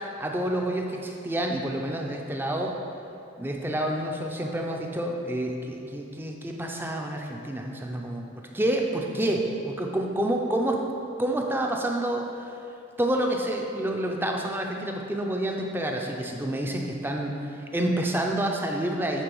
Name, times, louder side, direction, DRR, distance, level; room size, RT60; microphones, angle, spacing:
voice 1, 0.2-2.7 3.4-8.3 8.5-10.8 11.2-12.3 13.0-19.2, right 1 dB, 10° right, 1 dB, 0.5 m, -28 dB
9.0 x 3.9 x 5.3 m, 2.7 s
head